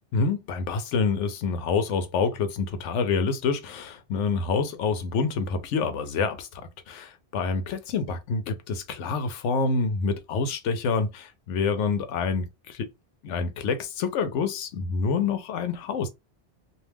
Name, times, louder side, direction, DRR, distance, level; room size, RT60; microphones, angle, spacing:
voice 1, 0.1-6.6 6.9-12.9 13.2-16.1, left 5 dB, 85° left, 0.9 m, -27 dB
2.5 x 2.2 x 3.3 m
omnidirectional pair, 1.2 m